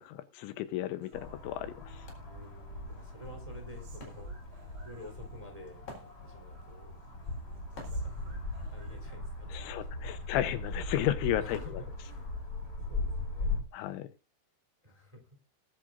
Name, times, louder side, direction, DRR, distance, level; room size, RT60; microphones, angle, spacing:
voice 1, 0.0-2.1 9.5-11.6 13.7-14.1, left 13 dB, 80° left, 12 dB, 3.1 m, -33 dB
Human voice, 1.0-2.2 2.5-5.7 6.0-6.8 7.0-9.0, right 4 dB, 65° right, 6.0 m, -61 dB
sound 1, 1.1-13.6, left 2 dB, 20° left, 3.5 m, -39 dB
Wood, 2.0-12.7, left 2 dB, 55° left, 5.6 m, -55 dB
voice 2, 2.1-7.0 7.8-8.1 8.7-10.3 11.4-12.3 12.8-13.6 14.8-15.4, equal, 10° right, 4 dB, 2.7 m, -51 dB
20.5 x 10.5 x 2.5 m, 0.29 s
omnidirectional pair, 5.6 m